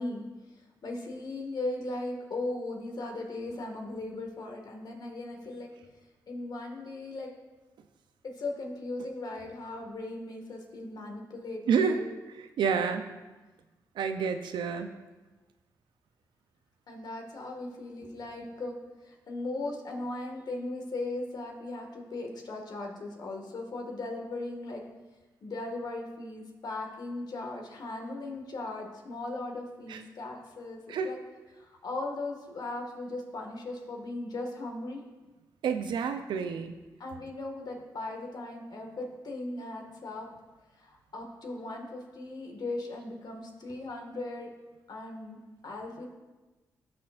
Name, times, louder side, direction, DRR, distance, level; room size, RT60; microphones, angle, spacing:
voice 1, 0.0-5.7 6.3-7.3 8.2-12.0 16.9-18.7 19.0-24.8 25.4-31.2 31.5-35.0 37.0-40.3 40.8-44.5 44.9-46.1, left 2 dB, 65° left, 1 dB, 1.9 m, -38 dB
voice 2, 11.7-12.1 12.6-13.1 14.0-14.9 29.9-30.0 30.9-31.1 35.6-36.7, right 6 dB, 85° right, 8 dB, 0.6 m, -28 dB
15.5 x 6.5 x 2.5 m, 1.2 s
cardioid pair, 55°, 8 cm